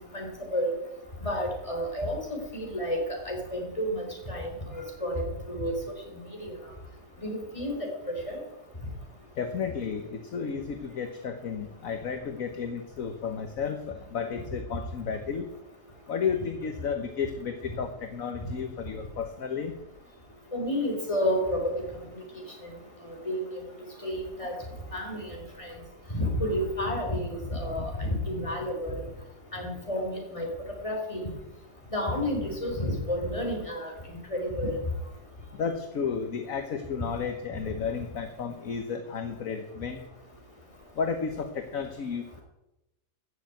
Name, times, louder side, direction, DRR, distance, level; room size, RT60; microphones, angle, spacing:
voice 1, 0.1-0.7 1.2-3.0 3.3-6.5 7.2-8.4 20.5-21.6 22.1-22.4 23.1-23.4 24.0-24.5 24.9-25.7 26.1-29.0 29.5-30.5 30.8-31.3 31.9-34.8, equal, 20° left, 1 dB, 3.9 m, -31 dB
voice 2, 9.4-15.5 16.1-19.7 35.5-40.0 41.0-42.4, left 6 dB, 55° left, 7 dB, 1.4 m, -32 dB
14.5 x 7.2 x 9.3 m, 0.92 s
omnidirectional pair, 1.8 m